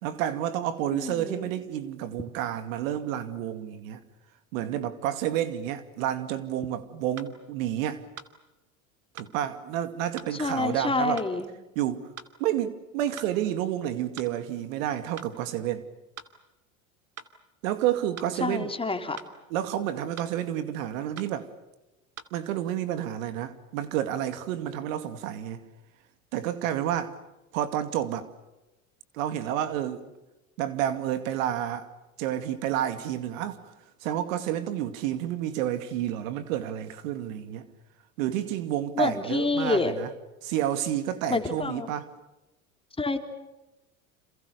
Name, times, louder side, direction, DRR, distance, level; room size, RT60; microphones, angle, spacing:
voice 1, 0.0-4.0 4.5-8.0 9.1-11.2 11.8-12.1 12.4-15.9 17.6-18.7 19.5-21.5 22.3-25.6 26.3-27.2 27.5-28.3 29.1-30.1 30.6-31.9 32.2-33.6 34.0-37.7 38.2-40.1 40.4-42.1, right 11 dB, 70° right, 2.5 m, -30 dB
voice 2, 0.9-1.5 10.4-11.5 18.4-19.2 39.0-39.9 41.3-41.9 43.0-43.2, left 3 dB, 15° left, 3.4 m, -27 dB
sound 1, 7.2-7.3 8.2-8.3 9.2-9.3 10.2-10.3 11.2-11.3 12.2-12.3 13.2-13.3 14.2-14.3 15.2-15.3 16.2-16.3 17.2-17.3 18.2-18.3 19.2-19.3 20.2-20.3 21.2-21.3 22.2-22.3, right 7 dB, 35° right, 2.6 m, -43 dB
29.5 x 28.0 x 6.8 m
hypercardioid pair, 95°, 41 cm